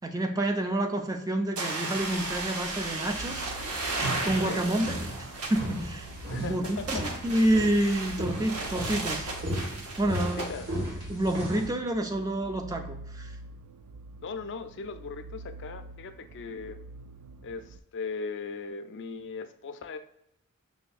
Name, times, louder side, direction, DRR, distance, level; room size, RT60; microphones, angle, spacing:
voice 1, 0.0-3.5 4.2-5.0 5.5-6.1 6.4-7.0 7.2-9.3 10.0-10.5 11.1-13.3, right 1 dB, 15° right, 4 dB, 0.4 m, -28 dB
sound 1, 1.6-10.5, right 2 dB, 70° right, 0.7 m, -35 dB
sound 2, 2.0-11.7, equal, 50° right, 1.4 m, -37 dB
sound 3, 3.2-17.8, right 3 dB, 90° right, 0.3 m, -46 dB
voice 2, 6.3-7.1 10.1-10.7 14.2-16.8 17.4-20.0, left 4 dB, 55° left, 8 dB, 0.4 m, -38 dB
5.9 x 2.6 x 2.3 m, 0.76 s
head